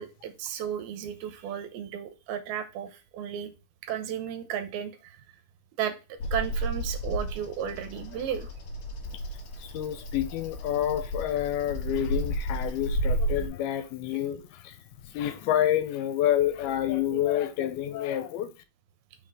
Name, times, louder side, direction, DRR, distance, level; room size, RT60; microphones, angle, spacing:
voice 1, 0.0-3.5 3.8-5.3 5.8-8.5, right 9 dB, 85° right, 2.8 m, -34 dB
Bird vocalization bird call bird song, 6.2-13.5, right 1 dB, 55° left, 2.4 m, -32 dB
voice 2, 9.6-14.8 15.0-18.5, left 11 dB, 80° left, 2.8 m, -28 dB
6.2 x 4.1 x 4.8 m
omnidirectional pair, 4.4 m